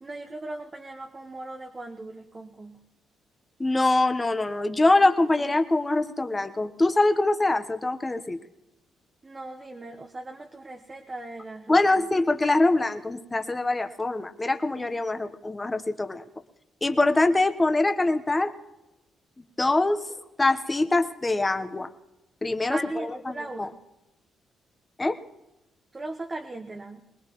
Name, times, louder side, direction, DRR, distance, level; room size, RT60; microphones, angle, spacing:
voice 1, 0.0-2.8 9.2-12.1 22.6-23.8 25.9-27.0, right 2 dB, 25° right, 3 dB, 1.0 m, -38 dB
voice 2, 3.6-8.4 11.7-16.2 16.8-18.5 19.6-20.0 20.4-21.9 22.4-23.7 25.0-25.2, left 2 dB, 20° left, 8 dB, 1.0 m, -24 dB
23.0 x 20.5 x 3.1 m, 0.96 s
cardioid pair, 90°, 0 cm